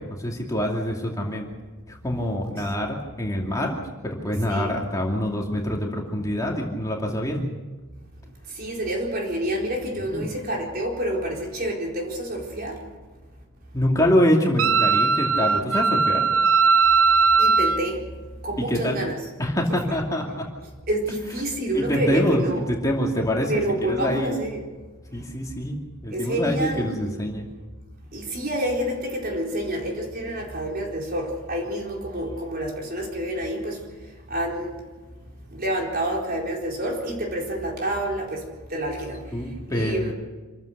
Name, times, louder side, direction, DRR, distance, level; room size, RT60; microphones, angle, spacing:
voice 1, 0.0-1.5 1.9-3.8 4.0-7.5 10.1-10.3 13.7-16.2 18.6-19.0 19.4-20.5 21.7-24.4 25.1-25.8 26.0-27.5 39.3-40.1, equal, 15° left, 2.5 m, -25 dB
voice 2, 8.5-12.8 17.4-18.1 18.4-19.2 19.7-19.8 20.9-22.6 23.5-24.7 26.1-27.2 28.1-33.8 34.3-34.8 35.5-38.4 38.7-39.2 39.7-40.1, right 1 dB, 45° right, 4.4 m, -28 dB
Wind instrument woodwind instrument, 14.6-17.8, right 5 dB, 65° right, 0.7 m, -19 dB
27.0 x 14.5 x 6.7 m
head